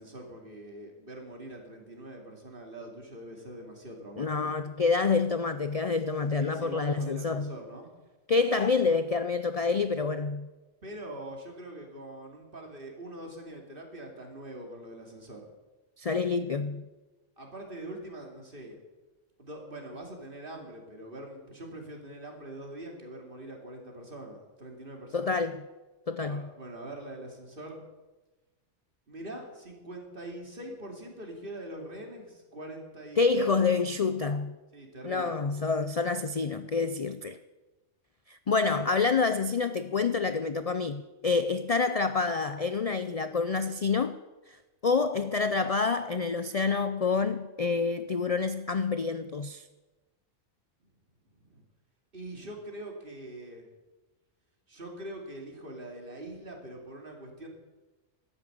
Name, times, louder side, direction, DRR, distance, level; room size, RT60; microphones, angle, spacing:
voice 1, 0.0-4.5 6.3-7.9 10.8-15.5 17.4-18.8 19.4-25.4 26.3-27.8 29.1-33.8 34.7-35.4 51.3-51.6 52.1-53.7 54.7-57.5, right 1 dB, 40° right, 2.7 m, -43 dB
voice 2, 4.2-7.5 8.3-10.5 16.0-16.9 25.1-25.6 26.1-26.5 33.2-34.6 35.0-37.4 38.3-44.2 44.5-44.6 44.8-49.6, left 4 dB, 60° left, 0.4 m, -27 dB
12.5 x 9.8 x 7.9 m
omnidirectional pair, 1.4 m